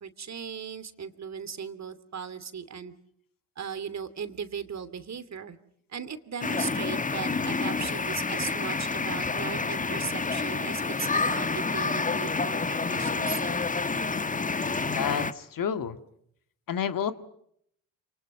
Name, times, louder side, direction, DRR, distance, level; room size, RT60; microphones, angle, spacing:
voice 1, 0.0-2.9 3.6-5.6 5.9-13.6, right 7 dB, 35° right, 12 dB, 2.7 m, -37 dB
sound 1, 6.4-15.3, left 4 dB, 15° left, 1.3 m, -28 dB
voice 2, 14.9-16.0 16.7-17.1, left 8 dB, 45° left, 10 dB, 2.0 m, -29 dB
29.0 x 28.0 x 5.3 m, 0.71 s
figure-of-eight pair, 50°, 46 cm